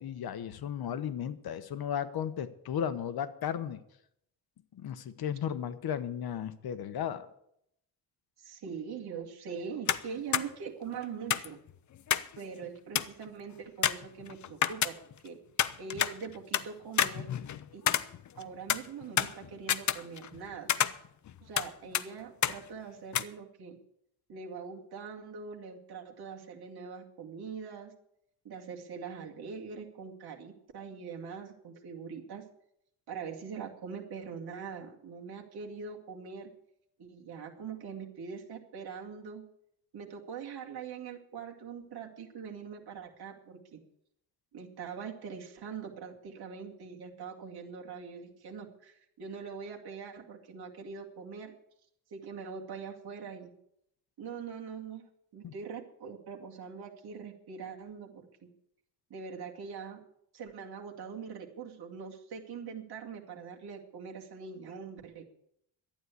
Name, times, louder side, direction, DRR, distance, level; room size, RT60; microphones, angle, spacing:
voice 1, 0.0-3.8 4.7-7.3 55.4-55.5, left 9 dB, 60° left, 13 dB, 1.0 m, -35 dB
voice 2, 8.4-11.6 12.4-15.0 15.2-15.4 15.8-17.3 17.7-18.0 18.3-20.7 21.4-23.8 24.3-27.9 28.4-32.4 33.1-36.5 37.0-39.5 39.9-43.8 44.5-51.5 52.1-53.5 54.2-55.1 55.3-58.5 59.1-60.0 60.3-65.2, right 6 dB, 65° right, 0 dB, 2.4 m, -43 dB
sound 1, 9.9-10.1 10.3-10.5 11.3-12.4 12.6-12.7 13.0-13.2 13.8-15.3 15.6-16.7 17.0-18.4 18.7-20.4 20.7-21.7 21.9-22.1 22.4-22.6 23.1-23.2, left 10 dB, 45° left, 0.6 m, -29 dB
12.0 x 9.4 x 8.4 m, 0.74 s
wide cardioid pair, 170°, 41 cm